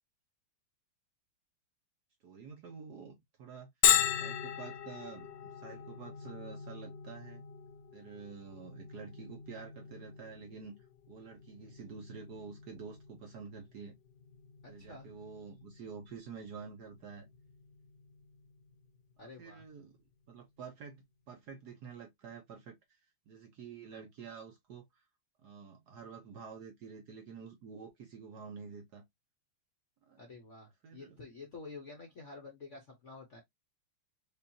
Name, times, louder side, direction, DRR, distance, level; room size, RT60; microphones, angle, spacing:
voice 1, 2.2-3.7 4.1-7.4 7.9-10.8 11.1-13.9 14.7-17.3 19.2-20.0 20.3-23.0 23.3-25.0 25.4-29.0 30.1-30.2 30.8-31.2, right 6 dB, 60° right, 1.2 m, -48 dB
Bell, 3.8-19.3, left 11 dB, 80° left, 1.0 m, -37 dB
voice 2, 14.6-15.1 19.2-19.6 30.2-33.4, left 3 dB, 50° left, 0.9 m, -49 dB
5.2 x 2.5 x 2.8 m
omnidirectional pair, 2.4 m